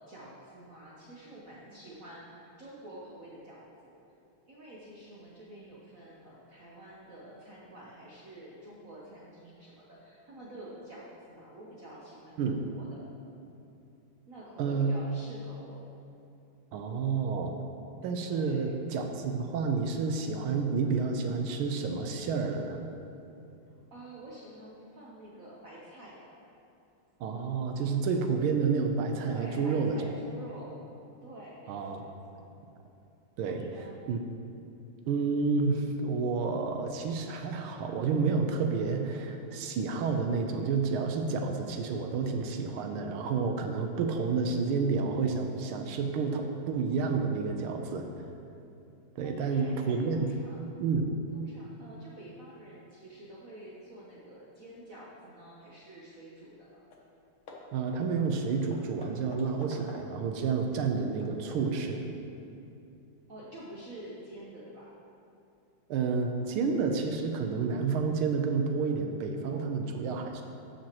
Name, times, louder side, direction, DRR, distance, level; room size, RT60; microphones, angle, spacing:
voice 1, 0.0-3.9 4.5-13.0 14.3-15.8 18.2-18.6 23.9-26.3 29.2-30.8 31.2-32.5 33.4-34.0 49.2-50.8 51.3-56.8 63.3-64.9 69.5-69.8, right 1 dB, 55° right, -6 dB, 1.0 m, -48 dB
voice 2, 14.6-14.9 16.7-17.5 18.0-22.8 27.2-30.0 31.7-32.0 33.4-34.2 35.1-48.1 49.2-50.3 50.8-51.1 57.7-62.0 65.9-70.4, right 5 dB, 85° right, 4 dB, 1.5 m, -30 dB
Hammer / Wood, 56.5-56.6 56.9-57.1 57.5-60.3 60.8-61.8, left 3 dB, 70° left, 1.6 m, -50 dB
12.5 x 5.8 x 2.9 m, 2.7 s
omnidirectional pair, 2.3 m